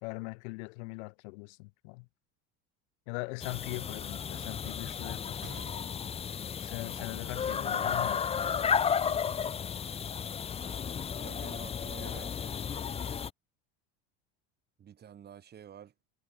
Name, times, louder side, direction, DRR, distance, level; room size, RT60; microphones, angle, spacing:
voice 1, 0.0-2.0 3.1-5.4 6.6-8.2, left 30 dB, 75° left, 1.7 m, -40 dB
sound 1, 3.4-13.3, left 7 dB, 15° left, 0.7 m, -33 dB
Gunshot gunfire, 5.4-7.4 7.7-7.8 8.5-8.7, right 25 dB, 60° right, 4.6 m, -54 dB
voice 2, 11.1-12.3 14.8-15.9, right 9 dB, 30° right, 2.6 m, -49 dB
supercardioid pair, 135°, 34 cm